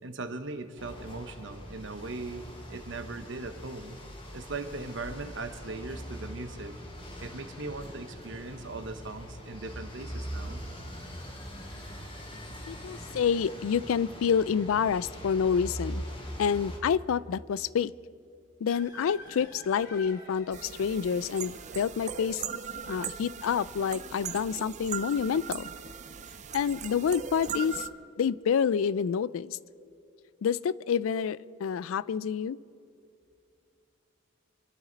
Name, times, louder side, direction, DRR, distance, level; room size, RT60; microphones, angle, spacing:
voice 1, 0.0-2.4 2.7-4.0 4.3-6.8 7.2-10.6, right 3 dB, 65° right, 8 dB, 1.1 m, -39 dB
sound 1, 0.8-16.8, equal, 25° left, 2.2 m, -42 dB
voice 2, 12.7-16.0 16.4-17.9 18.6-22.4 22.9-25.7 26.5-27.9 28.2-29.6 30.4-32.6, left 7 dB, 85° left, 20 dB, 0.3 m, -28 dB
sound 2, 18.7-26.9, left 2 dB, 55° left, 2.6 m, -52 dB
sound 3, 20.5-27.9, right 8 dB, 35° right, 0.6 m, -39 dB
26.5 x 12.0 x 4.0 m, 2.5 s
head